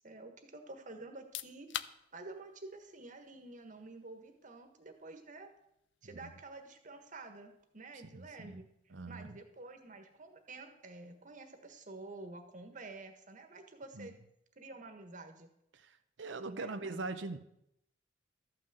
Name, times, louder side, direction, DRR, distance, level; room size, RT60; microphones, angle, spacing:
voice 1, 0.0-1.8 2.1-5.5 6.0-8.7 9.1-14.1 14.6-15.5 16.5-17.0, right 2 dB, 45° right, 6 dB, 1.5 m, -49 dB
sound 1, 1.1-13.7, left 10 dB, 75° left, 0.5 m, -53 dB
voice 2, 8.0-9.4 13.9-14.1 15.7-17.4, right 3 dB, 90° right, 9 dB, 0.8 m, -43 dB
13.5 x 6.0 x 7.9 m, 0.80 s
head